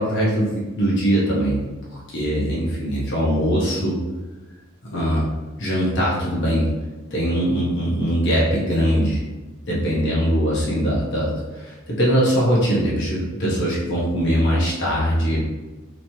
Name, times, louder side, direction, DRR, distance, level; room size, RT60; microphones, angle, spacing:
voice 1, 0.0-1.6 1.9-4.0 4.9-5.3 5.6-6.7 7.1-9.2 9.7-15.4, equal, 60° left, -6 dB, 0.9 m, -21 dB
3.0 x 3.0 x 2.7 m, 1.2 s
head